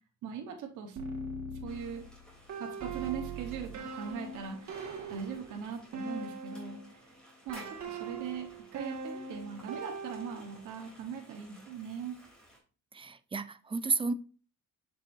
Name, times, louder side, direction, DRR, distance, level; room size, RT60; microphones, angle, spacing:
voice 1, 0.2-1.0 1.6-2.0 2.6-7.0 7.4-12.2, right 7 dB, 80° right, 1.2 m, -40 dB
sound 1, 1.0-6.9 7.5-10.7, right 3 dB, 65° right, 1.7 m, -41 dB
sound 2, 1.7-12.6, equal, 5° left, 3.1 m, -56 dB
voice 2, 12.9-14.1, right 4 dB, 20° right, 0.5 m, -32 dB
7.0 x 5.3 x 2.6 m
cardioid pair, 90°, 30 cm